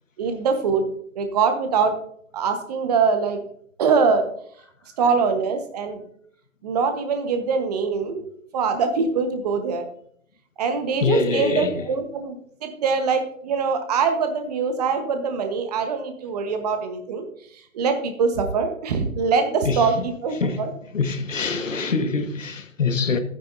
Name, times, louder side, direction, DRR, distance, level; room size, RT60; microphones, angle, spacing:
voice 1, 0.2-0.9 1.1-1.9 2.3-3.4 3.8-4.2 5.0-6.0 6.6-8.3 8.5-9.9 10.6-17.3 17.7-20.7, right 5 dB, 30° right, 1.3 m, -23 dB
voice 2, 11.0-11.9 19.6-20.0 20.3-20.7 20.9-23.2, left 4 dB, 65° left, 1.4 m, -24 dB
13.0 x 9.6 x 2.7 m
figure-of-eight pair, 140°, 41 cm